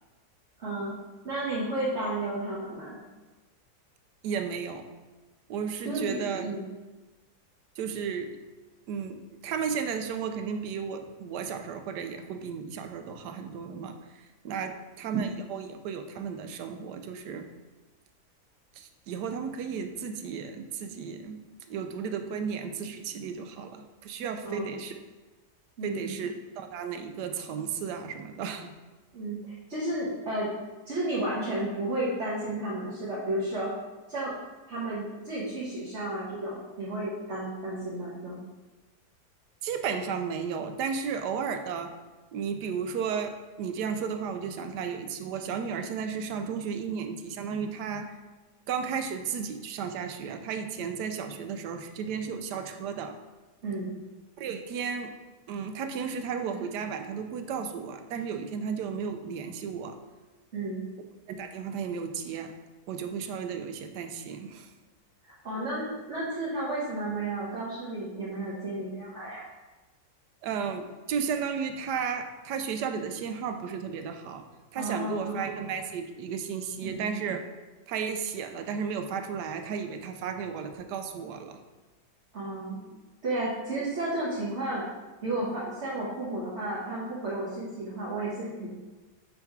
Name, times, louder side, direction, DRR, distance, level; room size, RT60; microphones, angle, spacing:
voice 1, 0.6-0.9 1.2-3.0 5.8-6.7 24.4-24.7 25.8-26.1 29.1-30.5 30.9-33.7 34.1-34.3 34.7-38.4 53.6-54.0 60.5-60.8 65.4-69.4 74.7-75.4 76.8-77.1 82.3-82.8 83.2-84.8 85.2-88.7, right 1 dB, 45° right, -8 dB, 1.5 m, -32 dB
voice 2, 4.2-4.8 5.5-6.5 7.8-8.3 8.9-9.2 9.4-17.5 18.8-21.4 21.7-25.0 25.8-28.7 39.6-41.9 42.3-48.1 48.7-53.1 54.4-55.1 55.5-60.0 61.3-62.5 62.9-64.7 70.4-74.4 74.7-77.4 77.9-81.6, right 6 dB, 85° right, 6 dB, 1.2 m, -34 dB
6.8 x 3.5 x 4.6 m, 1.2 s
omnidirectional pair, 1.8 m